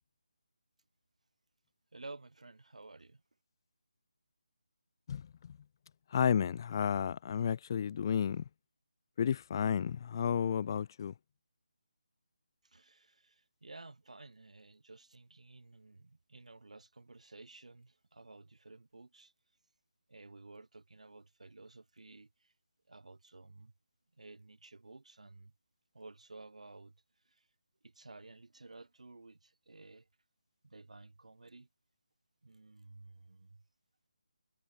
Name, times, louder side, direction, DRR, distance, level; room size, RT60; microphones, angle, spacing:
voice 1, 1.9-3.2 12.6-19.3 20.1-22.5 22.9-23.7 24.2-25.5 25.9-26.9 27.3-27.5 27.8-30.1 30.6-31.7 32.4-33.6, right 3 dB, 70° right, 2.0 m, -54 dB
voice 2, 5.1-5.6 6.1-8.4 9.2-11.1, left 8 dB, 35° left, 0.7 m, -32 dB
figure-of-eight pair, 155°, 4 cm